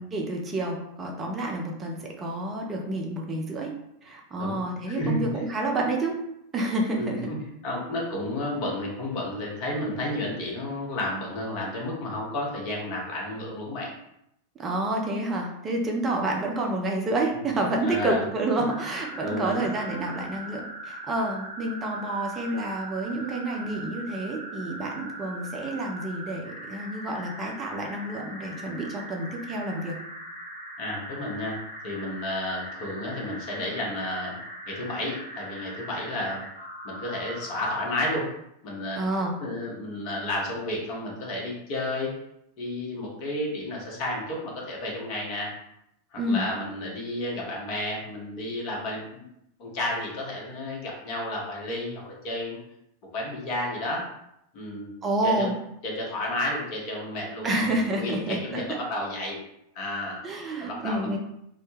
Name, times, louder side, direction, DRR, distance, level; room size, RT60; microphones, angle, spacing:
voice 1, 0.0-3.7 4.0-6.2 6.5-7.3 14.6-30.0 38.9-39.4 46.2-46.5 55.0-55.5 57.4-58.8 60.2-61.2, right 2 dB, 20° right, 0 dB, 0.5 m, -29 dB
voice 2, 4.4-5.3 7.0-13.9 17.6-18.2 19.2-19.7 30.8-31.6 31.8-34.4 34.7-36.4 36.8-38.3 38.6-39.0 39.4-42.1 42.6-45.5 46.1-49.3 49.6-52.6 53.1-54.1 54.5-54.9 55.2-55.5 55.8-59.4 59.7-60.2 60.6-61.2, left 1 dB, 40° left, -2 dB, 0.8 m, -32 dB
sound 1, 18.7-37.7, right 1 dB, 90° right, 0.5 m, -40 dB
2.1 x 2.0 x 3.0 m, 0.79 s
figure-of-eight pair, 90°, 0 cm